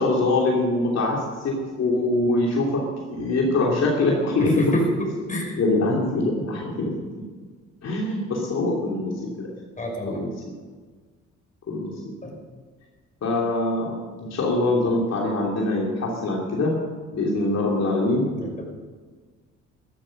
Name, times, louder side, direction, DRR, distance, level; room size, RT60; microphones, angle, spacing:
voice 1, 0.0-2.8 3.1-4.7 5.6-6.9 7.8-9.1 9.4-9.5 10.1-10.3 11.7-12.0 13.2-13.9 14.3-16.8 17.1-18.3, left 2 dB, 55° left, -3 dB, 3.1 m, -23 dB
voice 2, 4.4-5.5 9.8-10.2 12.2-12.4 18.3-18.6, equal, 25° left, 0 dB, 5.7 m, -28 dB
13.5 x 13.0 x 6.6 m, 1.5 s
cardioid pair, 90°, 30 cm